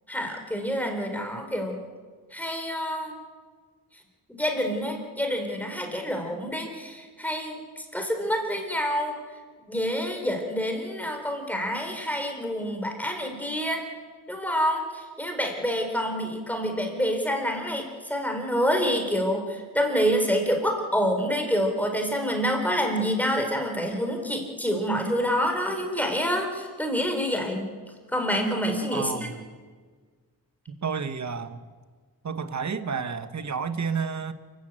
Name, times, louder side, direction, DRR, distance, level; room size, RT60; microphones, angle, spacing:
voice 1, 0.1-1.8 2.3-3.2 4.3-9.2 9.7-13.8 14.3-27.7 28.1-29.3, equal, 5° left, 3 dB, 4.0 m, -27 dB
voice 2, 28.9-29.4 30.7-31.6 32.2-34.3, right 5 dB, 45° right, 11 dB, 1.4 m, -31 dB
29.0 x 14.0 x 9.0 m, 1.5 s
wide cardioid pair, 135°, 38 cm